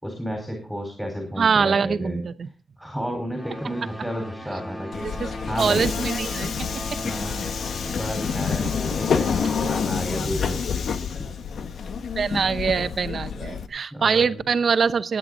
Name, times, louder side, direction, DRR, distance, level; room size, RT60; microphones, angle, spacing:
voice 1, 0.0-2.2 2.8-5.1 5.5-6.0 7.0-7.5 7.9-10.6 13.9-14.4, equal, ahead, 2 dB, 4.3 m, -32 dB
voice 2, 1.4-2.5 5.2-5.3 5.6-6.5 6.9-7.0 12.1-15.2, right 6 dB, 60° right, 12 dB, 0.8 m, -23 dB
sound 1, 3.3-9.8, equal, 20° left, 2.9 m, -38 dB
Subway metro underground, 4.9-13.7, left 6 dB, 90° left, 1.1 m, -28 dB
17.5 x 9.7 x 3.9 m, 0.35 s
wide cardioid pair, 130°, 0 cm